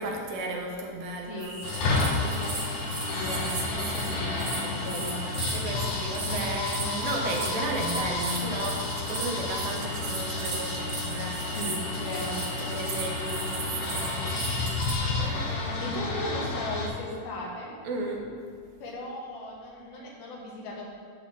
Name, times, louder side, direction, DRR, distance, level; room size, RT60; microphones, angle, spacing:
voice 1, 0.0-1.6 3.4-4.2 5.5-11.8 12.1-15.8 17.8-18.4, right 2 dB, 80° right, 0 dB, 2.8 m, -35 dB
voice 2, 1.3-5.3 6.2-6.4 6.7-7.0 11.6-12.8 15.6-17.7 18.8-20.9, left 1 dB, 85° left, -2 dB, 3.4 m, -37 dB
sound 1, 1.4-14.9, right 3 dB, 55° right, 2.2 m, -37 dB
sound 2, 1.6-16.9, left 3 dB, 65° left, 2.3 m, -31 dB
11.0 x 4.2 x 7.4 m, 2.3 s
omnidirectional pair, 4.2 m